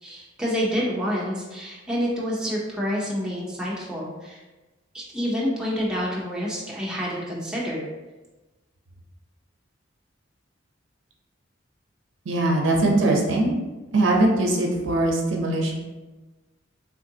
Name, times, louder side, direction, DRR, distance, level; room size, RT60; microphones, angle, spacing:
voice 1, 0.0-4.4 4.9-7.8, equal, 5° right, -6 dB, 0.6 m, -28 dB
voice 2, 12.3-13.6 13.9-15.8, right 2 dB, 80° right, 0 dB, 0.6 m, -21 dB
3.6 x 2.4 x 2.7 m, 1.1 s
head